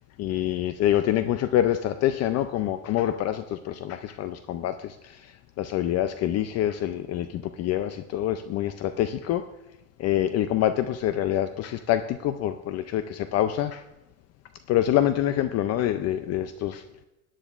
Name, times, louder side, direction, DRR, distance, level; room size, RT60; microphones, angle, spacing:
voice 1, 0.2-9.5 10.0-13.8 14.7-16.8, left 12 dB, 45° left, 0.4 m, -26 dB
17.0 x 10.0 x 2.4 m
cardioid pair, 140°, 36 cm